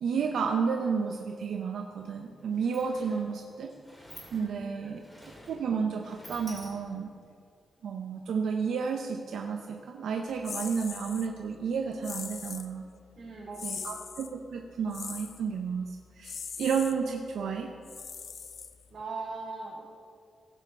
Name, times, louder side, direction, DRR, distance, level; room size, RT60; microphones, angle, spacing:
voice 1, 0.0-3.7 4.3-5.0 5.5-7.1 7.8-12.8 13.6-17.7, right 6 dB, 85° right, 3 dB, 0.7 m, -31 dB
Sliding door, 2.0-2.1 2.3-7.2, equal, 10° left, 2.2 m, -50 dB
voice 2, 4.3-5.0 13.2-13.9 18.9-19.8, right 3 dB, 40° right, -5 dB, 3.3 m, -40 dB
sound 1, 10.4-11.3 12.0-12.7 13.5-14.3 14.9-15.4 16.2-16.9 17.8-19.0, left 6 dB, 50° left, 0.6 m, -40 dB
16.0 x 5.4 x 6.3 m, 2.3 s
wide cardioid pair, 160°, 0 cm